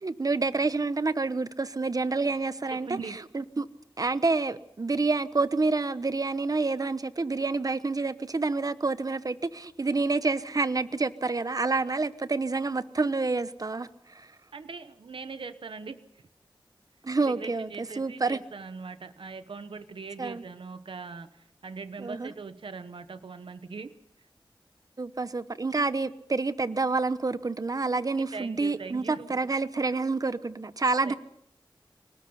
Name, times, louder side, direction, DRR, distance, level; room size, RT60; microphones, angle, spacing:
voice 1, 0.0-3.7 4.0-14.3 17.0-18.4 20.2-20.4 22.0-22.3 25.0-31.1, right 3 dB, 45° right, 14 dB, 1.0 m, -28 dB
voice 2, 2.7-3.2 14.5-16.0 17.2-23.9 28.0-28.1 28.3-29.3 31.0-31.1, right 4 dB, 75° right, 11 dB, 1.1 m, -41 dB
24.5 x 19.0 x 5.7 m, 0.71 s
wide cardioid pair, 65°, 9 cm